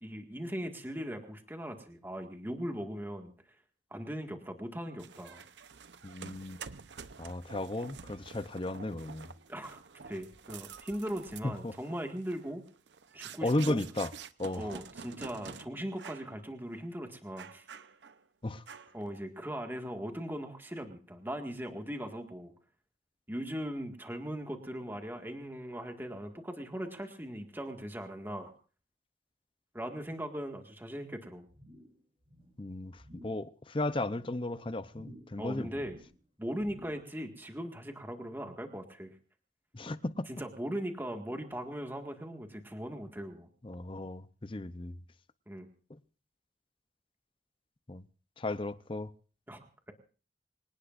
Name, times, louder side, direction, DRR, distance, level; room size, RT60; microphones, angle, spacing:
voice 1, 0.0-3.3 3.9-5.4 9.5-9.8 10.1-12.6 13.1-13.8 14.5-17.6 18.9-22.5 23.3-28.5 29.7-31.5 35.4-36.0 36.4-39.2 40.3-43.5 45.5-45.7 49.5-49.6, equal, 10° right, 1.9 m, -39 dB
sound 1, 5.0-15.6 16.0-16.3 16.7-16.8 17.4-18.2 18.7-19.1, right 6 dB, 75° right, 0.8 m, -49 dB
voice 2, 6.0-6.6 7.2-9.3 11.4-11.7 13.4-14.1 14.4-14.7 18.4-18.6 32.6-35.7 39.7-40.3 43.6-45.0 47.9-48.0 48.4-49.1, left 2 dB, 30° left, 0.7 m, -35 dB
sound 2, 31.5-32.0 32.2-32.6 33.0-33.5 33.8-34.3 34.9-35.4 35.7-36.2 36.6-37.1 37.5-37.6, equal, 35° right, 6.0 m, -54 dB
25.5 x 18.0 x 2.6 m
head